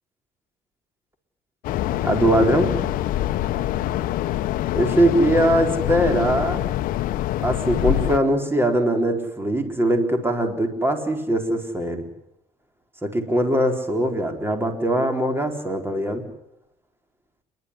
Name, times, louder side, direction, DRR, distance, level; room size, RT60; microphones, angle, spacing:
sound 1, 1.6-8.2, left 13 dB, 70° left, 1.0 m, -25 dB
voice 1, 2.0-2.9 4.7-6.6 7.4-12.0 13.0-16.3, right 1 dB, 15° right, 4 dB, 4.3 m, -21 dB
28.5 x 12.5 x 10.0 m, 0.82 s
supercardioid pair, 75°, 15 cm